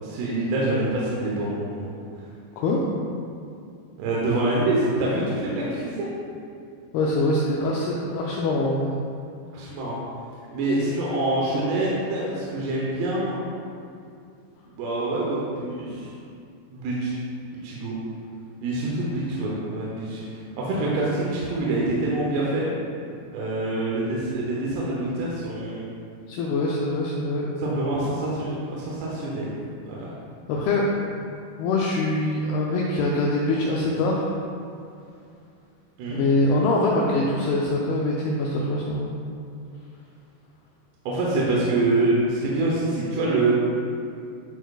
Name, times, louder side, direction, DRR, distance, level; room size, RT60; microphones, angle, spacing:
voice 1, 0.0-1.9 4.0-6.1 9.5-10.0 10.5-13.4 14.8-16.1 16.7-17.1 17.6-18.0 18.6-20.2 20.6-22.7 23.3-25.8 27.6-29.6 29.8-30.1 36.0-36.2 41.1-43.6, right 2 dB, 75° right, -5 dB, 2.7 m, -25 dB
voice 2, 6.9-8.9 26.3-27.5 30.5-30.9 31.6-34.3 36.1-39.1, left 2 dB, 90° left, -3 dB, 2.2 m, -23 dB
10.5 x 4.5 x 2.3 m, 2.4 s
omnidirectional pair, 5.1 m